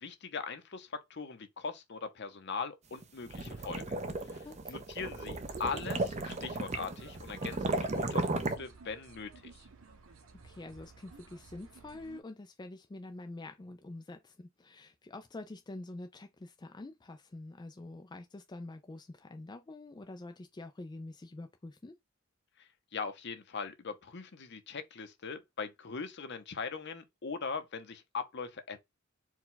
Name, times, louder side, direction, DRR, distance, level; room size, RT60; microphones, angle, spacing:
voice 1, 0.0-4.0 4.3-9.3 22.9-28.8, left 5 dB, 55° left, 0.8 m, -40 dB
sound 1, 3.0-8.6, right 2 dB, 35° right, 0.6 m, -35 dB
voice 2, 4.4-4.8 10.4-21.9, left 2 dB, 20° left, 0.4 m, -46 dB
sound 2, 5.5-12.2, right 4 dB, 90° right, 0.8 m, -55 dB
4.6 x 2.3 x 3.8 m
head